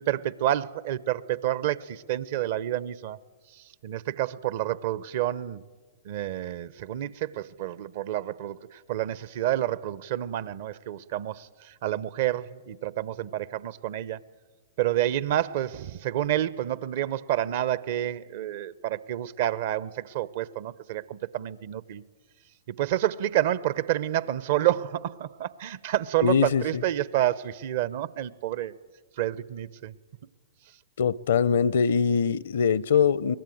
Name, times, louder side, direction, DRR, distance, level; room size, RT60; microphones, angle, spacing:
voice 1, 0.0-3.2 3.5-5.6 6.0-14.2 14.8-22.0 22.7-28.7 29.2-30.0, right 13 dB, 55° right, 0.8 m, -29 dB
voice 2, 26.2-26.8 31.0-33.4, left 6 dB, 70° left, 0.7 m, -23 dB
23.0 x 19.5 x 9.2 m
hypercardioid pair, 110°, 0 cm